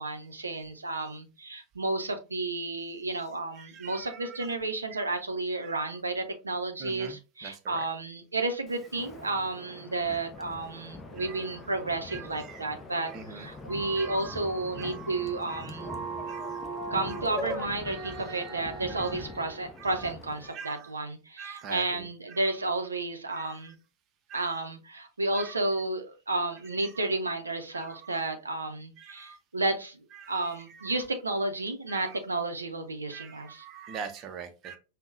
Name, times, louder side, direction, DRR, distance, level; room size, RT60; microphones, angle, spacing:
voice 1, 0.0-15.9 16.9-23.7 24.3-30.0 30.3-33.6, right 2 dB, 80° right, 5 dB, 0.5 m, -32 dB
voice 2, 3.6-4.5 4.9-5.1 5.6-5.8 6.8-7.2 7.4-7.8 11.2-11.5 12.1-12.6 13.1-13.5 14.0-14.4 14.8-15.0 15.5-15.7 16.3-16.6 17.1-17.2 18.0-18.3 19.0-19.2 19.8-19.9 20.4-20.9 21.4-22.4 23.3-23.7 24.3-24.5 25.3-25.5 27.7-28.2 29.0-29.4 30.2-30.9 31.9-32.2 33.1-34.8, right 6 dB, 35° right, 7 dB, 0.6 m, -44 dB
Wind, 8.7-20.5, left 3 dB, 15° left, 0.6 m, -45 dB
sound 1, 13.7-19.7, right 2 dB, 5° right, 1.2 m, -39 dB
5.3 x 2.1 x 2.4 m, 0.31 s
figure-of-eight pair, 90°, 0 cm